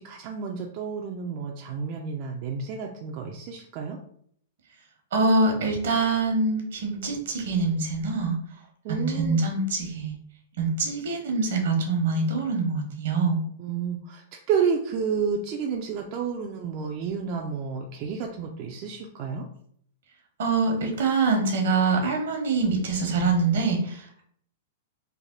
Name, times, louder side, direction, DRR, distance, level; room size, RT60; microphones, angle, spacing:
voice 1, 0.0-4.0 8.8-9.4 13.6-19.4, right 6 dB, 45° right, 2 dB, 0.4 m, -30 dB
voice 2, 5.1-8.4 8.9-10.1 10.6-13.4 20.4-24.2, right 3 dB, 75° right, 3 dB, 1.0 m, -24 dB
3.3 x 2.1 x 3.7 m, 0.65 s
hypercardioid pair, 135°, 0 cm